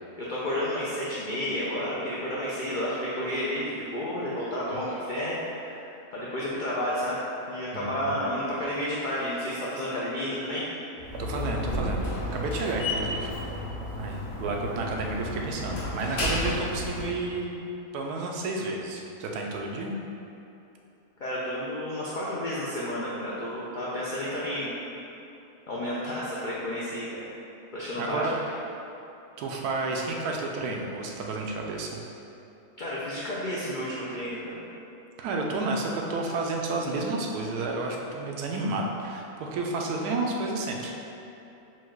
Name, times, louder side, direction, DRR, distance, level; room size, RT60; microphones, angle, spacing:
voice 1, 0.1-5.8 6.1-7.2 7.5-10.6 21.2-24.7 25.7-27.2 27.7-28.5 32.8-34.6, left 1 dB, 80° left, -7 dB, 0.4 m, -31 dB
voice 2, 7.7-8.1 11.2-13.3 14.0-17.5 17.9-19.9 28.0-28.5 29.4-31.9 35.2-41.0, right 3 dB, 85° right, 0 dB, 1.1 m, -31 dB
Slam, 11.0-17.2, left 1 dB, 50° left, 1.0 m, -32 dB
4.5 x 2.3 x 4.5 m, 2.9 s
omnidirectional pair, 1.6 m